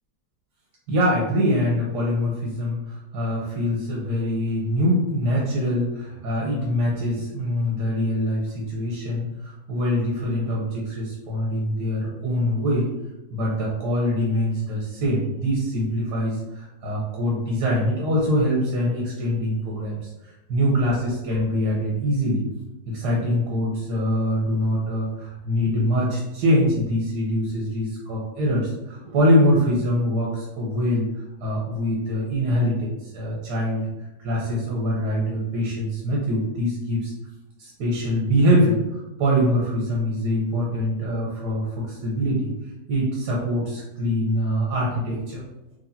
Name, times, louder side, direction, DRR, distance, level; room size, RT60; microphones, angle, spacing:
voice 1, 0.9-12.9 13.3-22.4 22.9-31.1 31.4-33.9 34.2-37.1 37.6-42.5 42.9-45.4, equal, 85° right, -4 dB, 1.6 m, -24 dB
4.7 x 3.3 x 2.8 m, 0.99 s
omnidirectional pair, 1.7 m